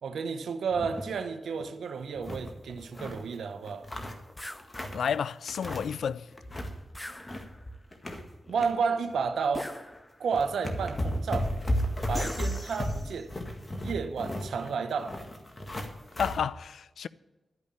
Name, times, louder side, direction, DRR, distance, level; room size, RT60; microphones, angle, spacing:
voice 1, 0.0-3.9 8.5-9.7 10.2-11.5 12.1-13.3 13.8-15.2, right 5 dB, 80° right, 0.8 m, -31 dB
sound 1, 0.7-1.2 1.5-1.6 2.0-3.2 3.6-5.1 5.5-6.1 6.3-6.8 7.1-8.7 9.1-9.3 10.0-10.1 10.3-16.4, equal, 35° left, 1.8 m, -34 dB
sound 2, 4.4-4.7 6.9-7.8 9.5-10.3 12.1-13.3, left 1 dB, 15° left, 0.8 m, -41 dB
voice 2, 4.9-6.3 16.2-17.1, left 7 dB, 80° left, 0.3 m, -31 dB
11.5 x 5.4 x 8.7 m
supercardioid pair, 40°, 0 cm